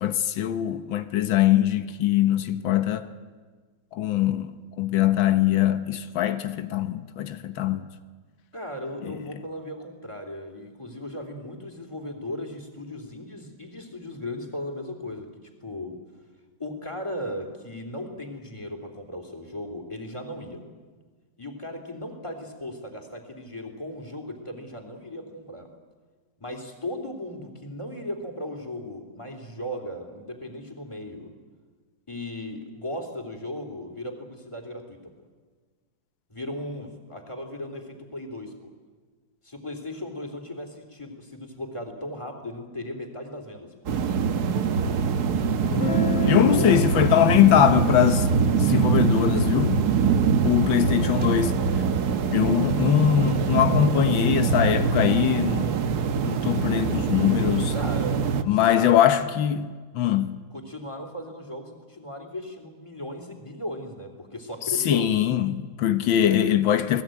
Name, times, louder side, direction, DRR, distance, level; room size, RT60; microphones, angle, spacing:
voice 1, 0.0-3.1 3.9-7.8 9.0-9.1 46.3-48.3 48.6-49.8 50.4-51.6 52.3-55.7 56.2-57.7 58.4-60.4 64.8-67.0, left 11 dB, 85° left, 1.8 m, -22 dB
voice 2, 8.5-15.3 15.6-16.0 16.6-20.6 21.4-25.7 26.4-31.3 32.1-35.0 36.3-38.5 39.4-43.7 46.0-46.8 57.7-59.0 60.5-65.1, left 1 dB, 15° left, 3.4 m, -36 dB
sound 1, 43.9-58.4, right 6 dB, 60° right, 1.5 m, -24 dB
Guitar, 45.6-51.4, left 4 dB, 40° left, 1.4 m, -33 dB
29.0 x 19.5 x 9.3 m
omnidirectional pair, 2.0 m